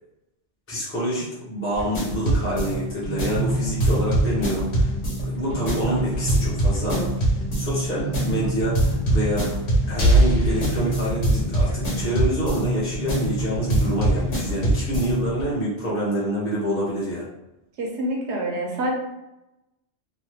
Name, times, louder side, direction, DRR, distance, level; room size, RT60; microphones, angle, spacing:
voice 1, 0.7-4.9 5.2-7.2 7.5-9.5 9.9-17.3, equal, 15° left, -9 dB, 0.7 m, -27 dB
sound 1, 1.7-15.4, right 1 dB, 70° left, 1.2 m, -23 dB
voice 2, 17.8-18.9, right 1 dB, 80° right, -1 dB, 1.0 m, -26 dB
3.0 x 2.1 x 3.2 m, 0.92 s
omnidirectional pair, 1.2 m